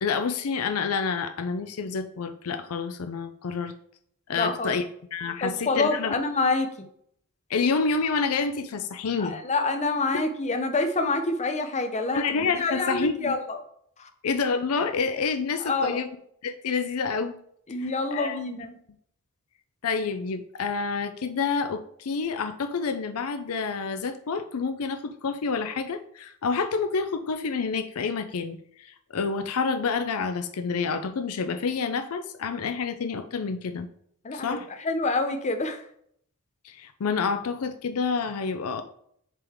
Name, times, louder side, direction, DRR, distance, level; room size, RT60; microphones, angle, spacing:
voice 1, 0.0-3.7 4.3-4.8 5.1-6.1 7.5-9.4 12.1-13.3 14.2-16.1 16.4-17.4 17.8-18.4 19.8-33.9 34.3-34.6 36.6-38.8, left 5 dB, 75° left, 8 dB, 0.5 m, -28 dB
voice 2, 4.3-4.8 5.4-6.9 9.2-12.2 12.5-13.6 14.0-14.1 15.6-16.1 17.7-18.7 34.2-35.9, left 3 dB, 30° left, 6 dB, 0.7 m, -27 dB
7.3 x 3.9 x 3.5 m, 0.67 s
head